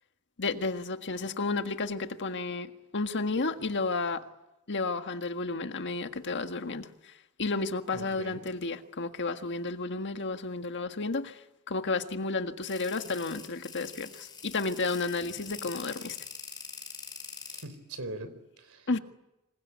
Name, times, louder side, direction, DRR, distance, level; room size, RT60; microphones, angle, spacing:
voice 1, 0.4-4.2 4.7-7.1 7.4-11.4 11.7-16.2 18.9-19.0, left 3 dB, 55° left, 1.7 m, -32 dB
voice 2, 7.9-8.4 17.5-18.9, right 2 dB, 70° right, 3.9 m, -42 dB
sound 1, 12.6-17.6, left 5 dB, 20° left, 5.1 m, -44 dB
27.0 x 21.0 x 9.6 m
head